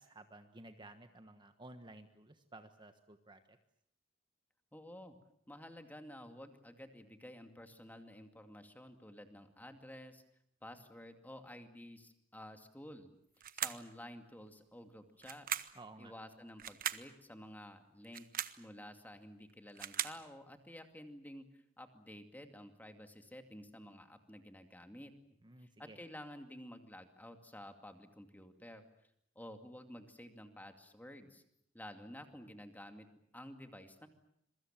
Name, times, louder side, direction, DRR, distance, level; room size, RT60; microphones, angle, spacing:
voice 1, 0.0-3.6 15.7-16.1 25.4-26.0, right 2 dB, 25° right, 7 dB, 1.3 m, -55 dB
voice 2, 4.7-5.2 5.5-10.2 10.6-13.1 13.5-15.5 16.0-18.3 18.6-25.1 25.6-28.9 29.4-31.4 31.7-33.1 33.3-34.1, left 1 dB, 10° left, 6 dB, 2.4 m, -52 dB
sound 1, 13.4-13.9 15.2-15.8 16.6-17.1 18.0-18.6 19.5-20.2, right 10 dB, 45° right, 1.0 m, -39 dB
26.5 x 23.5 x 7.5 m, 0.72 s
head